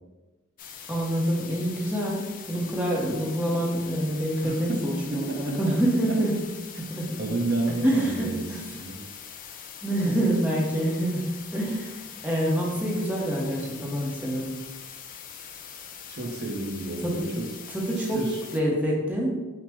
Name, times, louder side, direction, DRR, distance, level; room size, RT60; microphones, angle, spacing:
sound 1, 0.6-18.6, left 7 dB, 40° left, 0.4 m, -43 dB
voice 1, 0.9-6.4 6.8-7.2 7.8-8.8 9.8-14.6 17.0-17.2 17.7-18.3 18.5-19.4, right 1 dB, 5° right, -3 dB, 0.7 m, -26 dB
voice 2, 4.4-4.8 5.1-5.6 7.2-9.1 16.1-17.5 18.0-18.4, right 2 dB, 55° right, 0 dB, 0.7 m, -31 dB
5.9 x 2.1 x 3.4 m, 1.2 s
head